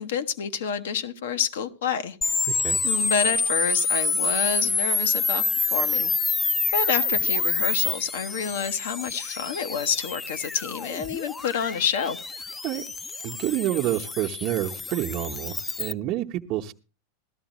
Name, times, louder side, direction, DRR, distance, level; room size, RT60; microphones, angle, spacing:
voice 1, 0.0-2.2 2.8-5.4 5.7-6.1 6.7-12.2, left 7 dB, 70° left, 0.9 m, -28 dB
sound 1, 2.2-15.9, left 3 dB, 15° left, 0.5 m, -27 dB
voice 2, 2.5-2.8 12.6-12.8 13.2-16.7, right 14 dB, 45° right, 0.9 m, -28 dB
16.0 x 13.0 x 3.0 m
hypercardioid pair, 95°, 0 cm